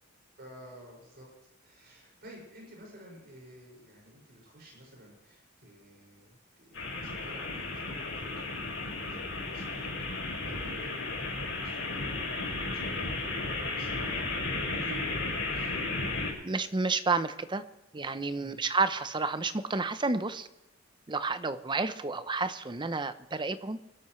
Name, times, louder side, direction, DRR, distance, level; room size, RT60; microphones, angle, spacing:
voice 1, 0.4-1.3 1.6-14.2 14.7-15.2 15.5-15.7 18.4-18.6, right 1 dB, 55° right, -2 dB, 5.9 m, -50 dB
sound 1, 6.7-16.3, left 3 dB, 85° left, 6.1 m, -34 dB
voice 2, 16.4-17.6 17.9-20.5 21.1-23.8, right 3 dB, 25° right, 11 dB, 0.7 m, -30 dB
24.0 x 12.0 x 3.2 m, 0.96 s
head